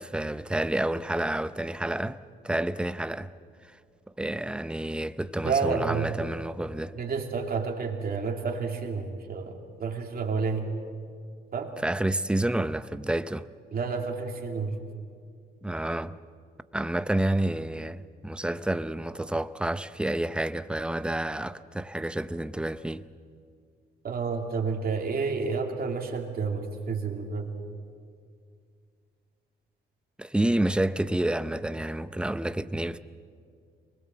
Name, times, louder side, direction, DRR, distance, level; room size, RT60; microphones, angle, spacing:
voice 1, 0.0-3.3 3.6-3.7 4.2-6.9 11.8-13.5 15.6-16.2 16.7-23.1 30.2-33.0, right 1 dB, 5° right, 0.6 m, -29 dB
voice 2, 5.4-6.0 6.9-10.7 11.5-11.7 13.7-14.8 24.0-27.5, right 5 dB, 50° right, 2.7 m, -30 dB
24.0 x 20.5 x 7.6 m
cardioid pair, 90°, 20 cm